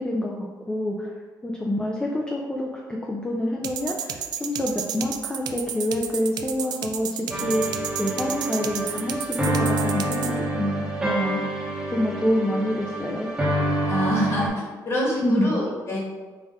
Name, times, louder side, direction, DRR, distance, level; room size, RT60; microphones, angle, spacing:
voice 1, 0.0-7.6 8.0-11.4 11.9-13.3 15.2-15.5, left 1 dB, 10° left, -1 dB, 0.5 m, -27 dB
sound 1, 3.6-10.3, right 8 dB, 65° right, 0.4 m, -32 dB
sound 2, 7.3-14.5, right 1 dB, 10° right, 1.0 m, -27 dB
voice 2, 13.9-16.0, equal, 35° left, -4 dB, 1.4 m, -26 dB
5.3 x 2.5 x 3.5 m, 1.4 s
cardioid pair, 115°, 8 cm